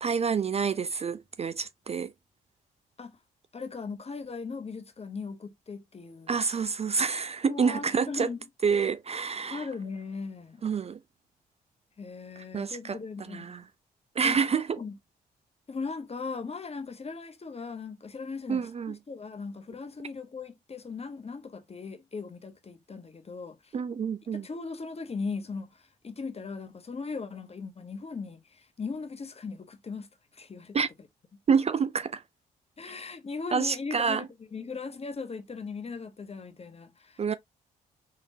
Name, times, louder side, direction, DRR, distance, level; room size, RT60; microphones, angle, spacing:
voice 1, 0.0-2.1 6.3-8.3 8.6-9.7 10.6-11.0 12.4-13.0 13.3-13.6 14.2-14.8 18.5-19.0 23.7-24.5 30.7-30.9 31.5-32.2 33.5-34.3 37.2-37.3, right 6 dB, 35° right, 0.4 m, -28 dB
voice 2, 3.5-6.4 7.4-8.4 9.5-10.6 12.0-13.5 14.2-14.4 14.8-15.0 15.7-23.7 24.3-30.8 32.8-34.2 34.5-37.4, left 4 dB, 30° left, 1.0 m, -38 dB
3.7 x 3.5 x 2.6 m
hypercardioid pair, 45°, 19 cm